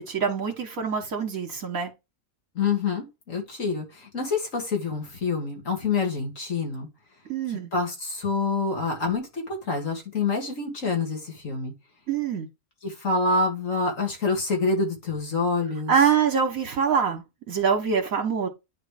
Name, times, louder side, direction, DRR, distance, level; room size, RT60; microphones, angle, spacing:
voice 1, 0.0-1.9 7.3-7.7 12.1-12.5 15.9-18.5, right 6 dB, 60° right, 1.7 m, -24 dB
voice 2, 2.6-6.9 7.7-11.7 12.8-15.9, left 4 dB, 50° left, 2.5 m, -27 dB
9.7 x 3.4 x 4.9 m
omnidirectional pair, 1.7 m